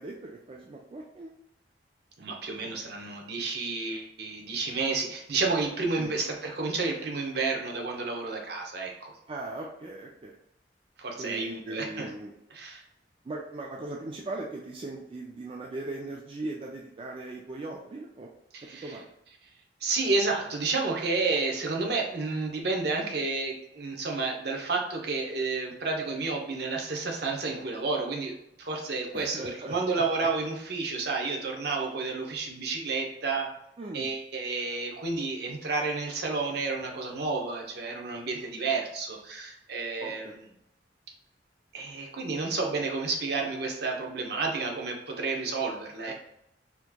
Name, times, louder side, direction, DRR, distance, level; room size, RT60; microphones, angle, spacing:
voice 1, 0.0-1.3 6.0-6.1 9.3-10.4 11.2-12.3 13.2-18.3 18.8-19.1 29.1-30.3 33.8-34.1 40.0-40.3 46.1-46.2, right 2 dB, 30° right, -1 dB, 0.3 m, -39 dB
voice 2, 2.2-9.1 11.0-12.1 12.5-12.8 18.5-19.0 19.8-33.5 33.9-40.3 41.7-46.1, right 3 dB, 65° right, 1 dB, 0.8 m, -31 dB
4.3 x 2.8 x 2.2 m, 0.80 s
head